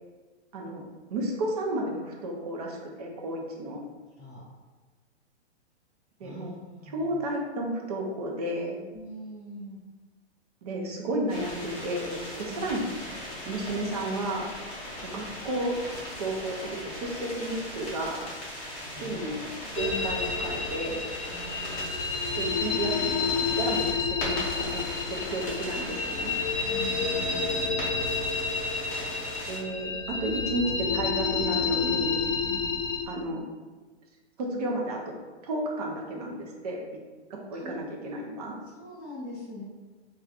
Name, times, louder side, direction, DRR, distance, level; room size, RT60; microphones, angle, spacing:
voice 1, 1.1-3.8 6.2-6.6 6.9-8.8 10.6-12.9 13.5-14.5 15.1-15.8 16.2-18.2 19.0-19.4 19.8-21.0 22.3-23.1 23.5-26.3 29.5-29.9 30.2-32.2 33.1-33.4 34.4-35.0 35.4-36.8 37.3-38.6, right 1 dB, 35° right, -1 dB, 0.5 m, -32 dB
voice 2, 6.2-7.2 8.9-9.8 12.5-12.6 18.9-19.2 21.3-21.9 26.6-27.9 32.4-32.7 37.5-37.9 38.7-39.6, left 1 dB, 15° right, -12 dB, 1.3 m, -43 dB
sound 1, 11.3-29.6, left 1 dB, 20° left, 0.6 m, -39 dB
sound 2, 19.8-33.0, left 5 dB, 55° left, 0.7 m, -29 dB
4.3 x 2.3 x 2.3 m, 1.3 s
hypercardioid pair, 160°, 34 cm